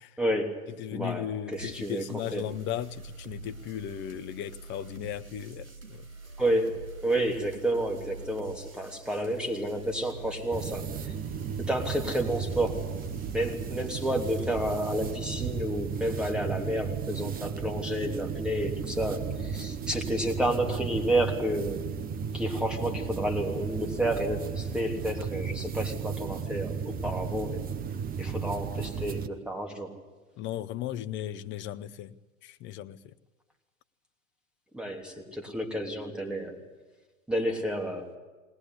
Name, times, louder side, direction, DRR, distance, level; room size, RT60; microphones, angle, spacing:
voice 1, 0.2-0.6 0.9-2.4 6.4-11.1 11.6-12.8 13.3-21.9 22.3-27.7 28.2-29.9 34.7-36.6 37.3-38.1, right 1 dB, ahead, 3.1 m, -30 dB
voice 2, 0.8-6.0 30.4-33.1, left 11 dB, 25° left, 0.8 m, -36 dB
sound 1, 1.5-15.2, right 2 dB, 85° right, 6.1 m, -46 dB
sound 2, 10.5-29.3, right 6 dB, 20° right, 1.0 m, -34 dB
20.5 x 19.5 x 9.8 m
hypercardioid pair, 105°, 42 cm